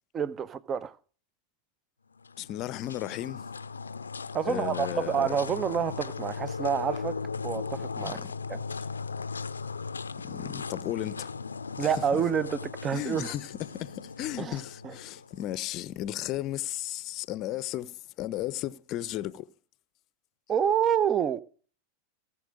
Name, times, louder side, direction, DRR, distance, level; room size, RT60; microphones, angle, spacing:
voice 1, 0.1-1.0 4.3-7.2 7.4-8.2 8.5-8.6 11.8-13.3 14.4-14.6 14.8-14.9 20.5-21.4, right 8 dB, 25° right, 0.8 m, -28 dB
sound 1, 2.2-15.5, left 4 dB, 75° left, 0.6 m, -37 dB
voice 2, 2.4-3.5 4.4-5.3 8.0-8.3 10.2-11.3 12.1-12.2 12.9-19.5, left 14 dB, 35° left, 0.7 m, -35 dB
17.5 x 7.7 x 5.1 m
figure-of-eight pair, 90°, 0 cm